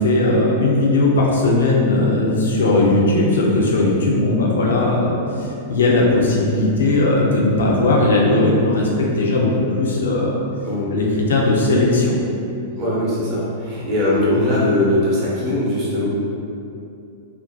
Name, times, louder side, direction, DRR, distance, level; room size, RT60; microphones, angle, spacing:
voice 1, 0.0-10.3 10.9-12.2, left 2 dB, 70° left, -2 dB, 0.5 m, -18 dB
voice 2, 12.8-16.0, left 1 dB, 40° right, -7 dB, 0.8 m, -20 dB
2.4 x 2.1 x 2.6 m, 2.6 s
figure-of-eight pair, 100°, 0 cm